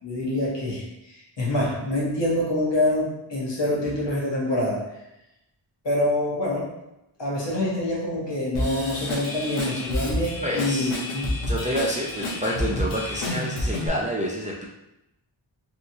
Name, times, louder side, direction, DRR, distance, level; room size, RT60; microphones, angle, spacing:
voice 1, 0.0-4.8 5.8-6.7 7.2-11.2, left 1 dB, 60° left, -4 dB, 1.2 m, -26 dB
Drum kit / Drum, 8.5-13.9, left 1 dB, 80° left, 0.9 m, -29 dB
voice 2, 10.4-10.9 11.5-14.6, equal, 15° right, -4 dB, 0.4 m, -28 dB
3.0 x 2.8 x 2.7 m, 0.89 s
wide cardioid pair, 65°, 48 cm